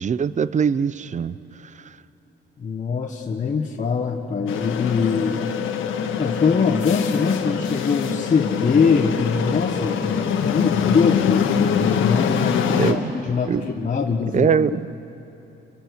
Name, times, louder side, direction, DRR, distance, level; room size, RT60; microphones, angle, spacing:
voice 1, 0.0-1.3 12.8-13.0 13.5-13.6 14.3-14.8, right 7 dB, 35° right, 16 dB, 0.7 m, -21 dB
voice 2, 2.6-5.4 6.2-14.5, left 5 dB, 40° left, 1 dB, 1.3 m, -23 dB
sound 1, 4.5-12.9, left 7 dB, 80° left, 1.6 m, -23 dB
29.0 x 24.5 x 6.6 m, 2.9 s
cardioid pair, 90°, 20 cm